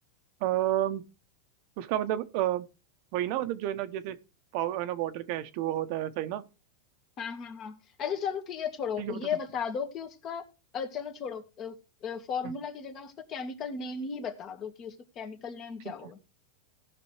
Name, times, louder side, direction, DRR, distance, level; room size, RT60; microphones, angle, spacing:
voice 1, 0.4-1.0 1.8-2.7 3.1-4.2 4.5-6.4 9.0-9.2 12.4-12.5 15.8-16.1, right 13 dB, 55° right, 0.9 m, -30 dB
voice 2, 7.2-10.4 10.7-16.2, left 6 dB, 35° left, 1.8 m, -35 dB
18.0 x 6.1 x 3.1 m
supercardioid pair, 130°, 0 cm